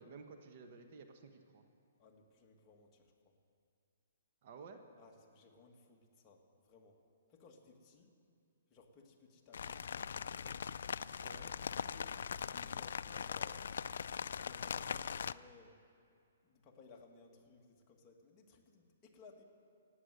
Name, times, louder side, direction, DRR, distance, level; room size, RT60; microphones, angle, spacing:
voice 1, 0.0-1.6 4.4-4.8 11.2-11.5, right 4 dB, 45° right, 5 dB, 1.2 m, -53 dB
voice 2, 2.0-3.3 5.0-7.0 7.3-8.1 8.7-10.6 11.3-13.7 14.3-15.8 16.4-19.4, left 4 dB, 20° left, 0 dB, 1.7 m, -61 dB
sound 1, 9.5-15.3, left 7 dB, 70° left, 0.3 m, -41 dB
15.0 x 9.6 x 8.0 m, 2.4 s
hypercardioid pair, 155°, 0 cm